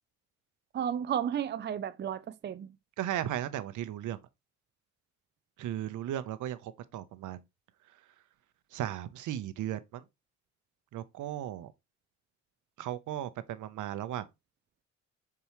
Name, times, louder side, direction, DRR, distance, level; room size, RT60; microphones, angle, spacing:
voice 1, 0.7-2.8, right 9 dB, 35° right, 0.5 m, -33 dB
voice 2, 3.0-4.2 5.6-7.4 8.7-10.0 10.9-11.7 12.8-14.2, right 12 dB, 80° right, 0.8 m, -36 dB
6.9 x 4.7 x 3.0 m
cardioid pair, 90°, 30 cm